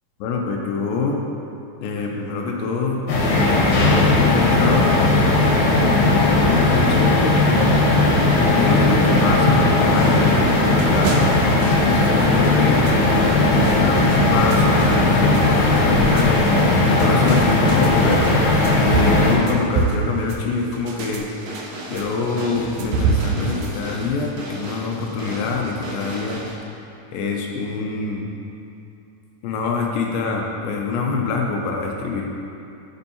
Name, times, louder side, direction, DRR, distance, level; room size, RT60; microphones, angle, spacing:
voice 1, 0.2-1.2 1.8-3.0 3.9-5.2 6.1-7.5 8.6-10.5 10.9-11.1 11.8-13.0 13.4-16.5 17.0-18.3 18.8-21.3 21.9-26.4 27.1-28.3 29.4-32.3, left 4 dB, 90° left, 0 dB, 2.4 m, -25 dB
sound 1, 3.1-19.4, left 2 dB, 70° left, 2.3 m, -17 dB
sound 2, 10.7-23.8, right 4 dB, 80° right, 1.7 m, -28 dB
sound 3, 21.2-26.6, right 2 dB, 65° right, 1.8 m, -34 dB
10.5 x 4.5 x 2.8 m, 2.7 s
omnidirectional pair, 4.0 m